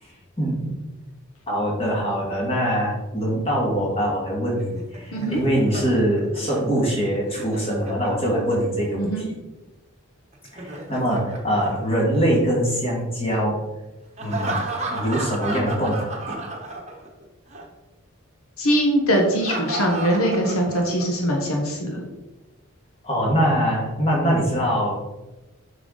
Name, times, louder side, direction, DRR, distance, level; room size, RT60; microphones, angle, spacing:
voice 1, 0.4-0.7 1.5-9.4 10.5-13.7 14.2-14.6 14.9-16.4 23.0-25.0, equal, 25° left, -3 dB, 2.2 m, -23 dB
Laughter, 4.6-8.6 10.3-12.5 14.2-17.2 17.5-17.6 19.1-21.2, right 2 dB, 30° right, 1.1 m, -33 dB
voice 2, 18.6-22.0, equal, 75° left, 1 dB, 1.2 m, -22 dB
7.5 x 5.7 x 4.0 m, 1.0 s
head